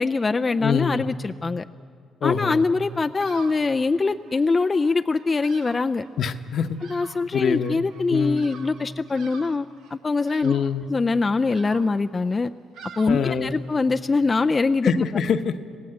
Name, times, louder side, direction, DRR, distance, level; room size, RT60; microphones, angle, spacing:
voice 1, 0.0-1.6 2.2-6.1 6.9-10.5 10.9-12.5 13.0-15.0, left 3 dB, 30° left, 8 dB, 0.5 m, -23 dB
voice 2, 0.6-1.0 2.2-2.6 6.2-6.7 7.3-7.8 8.1-8.5 10.4-10.8 13.1-13.5 14.8-15.8, left 6 dB, 65° left, 8 dB, 1.1 m, -24 dB
Bird vocalization bird call bird song, 2.9-13.8, right 6 dB, 90° right, 1.5 m, -47 dB
26.5 x 17.5 x 7.9 m, 2.3 s
cardioid pair, 90°, 0 cm